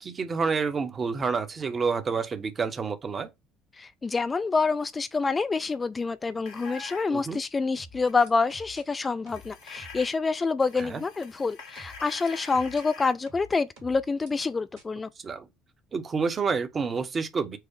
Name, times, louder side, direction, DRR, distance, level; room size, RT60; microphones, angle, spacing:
voice 1, 0.0-3.3 7.1-7.4 10.8-11.0 15.2-15.5 15.9-17.6, right 5 dB, 30° right, 0.8 m, -29 dB
voice 2, 3.8-15.1, left 4 dB, 25° left, 0.3 m, -27 dB
sound 1, 6.5-7.1 8.0-8.3 9.3-10.1 10.5-13.1, left 4 dB, 65° left, 1.1 m, -45 dB
sound 2, 7.8-8.8 9.3-10.1 10.8-10.9 11.8-12.8 13.3-14.3 14.8-14.9, right 1 dB, 70° right, 1.8 m, -48 dB
4.8 x 2.1 x 4.6 m
figure-of-eight pair, 55°, 0 cm